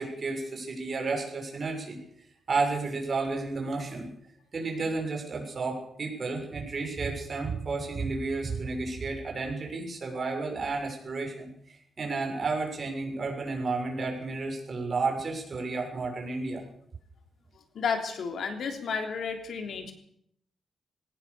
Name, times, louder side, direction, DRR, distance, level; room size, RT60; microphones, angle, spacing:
voice 1, 0.0-2.0 2.5-4.1 4.5-16.6, right 3 dB, 35° right, 2 dB, 7.0 m, -32 dB
voice 2, 17.5-19.9, left 5 dB, 65° left, 5 dB, 3.3 m, -32 dB
22.0 x 18.5 x 6.9 m, 0.68 s
wide cardioid pair, 155°, 0 cm